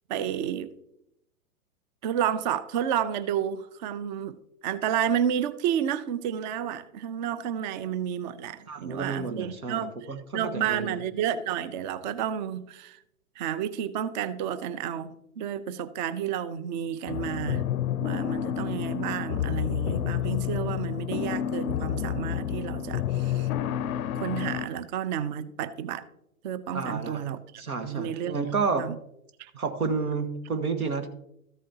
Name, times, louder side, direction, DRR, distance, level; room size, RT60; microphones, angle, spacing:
voice 1, 0.1-0.7 2.0-4.4 4.6-9.9 10.3-13.0 13.4-17.7 18.0-23.5 24.1-26.0 26.4-27.4 27.8-28.4 28.8-29.0 29.4-29.5, right 9 dB, 35° right, 0.5 m, -31 dB
voice 2, 8.7-11.0 26.7-27.2 27.6-28.9 29.6-31.1, right 4 dB, 80° right, 1.4 m, -30 dB
sound 1, 17.1-24.7, left 10 dB, 75° left, 0.5 m, -29 dB
13.5 x 8.4 x 2.8 m
figure-of-eight pair, 110°, 43 cm